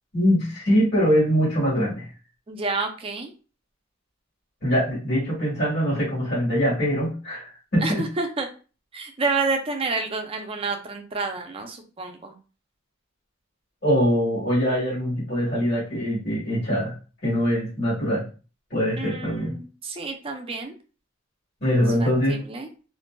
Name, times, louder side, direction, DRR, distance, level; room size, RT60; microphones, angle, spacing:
voice 1, 0.1-2.1 4.6-8.0 13.8-16.9 17.2-18.2 18.7-19.5 21.6-22.4, equal, 55° left, -9 dB, 1.4 m, -23 dB
voice 2, 2.5-3.3 7.8-8.5 8.9-12.3 19.0-20.7 22.0-22.7, right 3 dB, 30° right, 4 dB, 0.4 m, -29 dB
2.5 x 2.5 x 2.2 m, 0.35 s
head